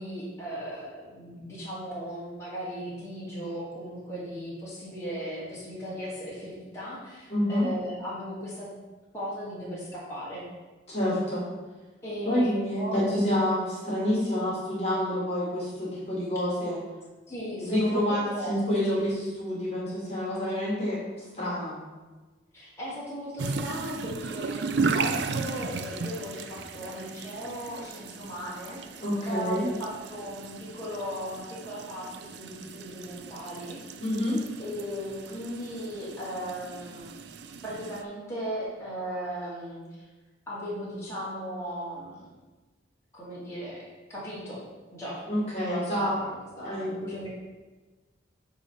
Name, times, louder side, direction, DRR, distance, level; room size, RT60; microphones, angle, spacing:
voice 1, 0.0-8.8 9.1-10.5 12.0-13.1 17.3-18.6 18.9-19.1 22.5-33.8 34.6-37.1 37.6-40.1 40.5-42.3 43.1-44.6 44.9-45.2 45.7-47.3, equal, 15° left, -9 dB, 2.2 m, -37 dB
voice 2, 7.3-7.7 10.9-11.4 12.3-16.8 17.6-21.0 21.3-21.8 29.0-29.7 34.0-34.4 45.3-46.1 46.6-47.1, equal, 35° left, -6 dB, 2.1 m, -28 dB
sound 1, 23.4-38.0, right 4 dB, 60° right, 0.4 m, -35 dB
8.7 x 3.4 x 5.6 m, 1.2 s
head